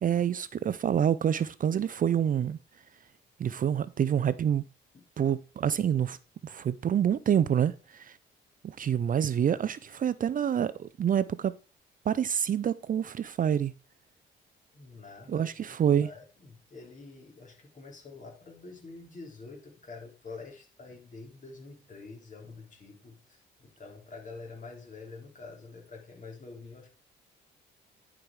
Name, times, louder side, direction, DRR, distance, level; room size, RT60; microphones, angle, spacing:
voice 1, 0.0-2.6 3.4-4.6 5.2-6.2 6.4-8.2 8.6-11.5 12.1-13.7 15.3-16.1, right 9 dB, 45° right, 0.5 m, -27 dB
voice 2, 14.7-15.8 16.0-26.9, left 3 dB, 40° left, 3.5 m, -47 dB
10.5 x 4.9 x 4.7 m
cardioid pair, 90°, 20 cm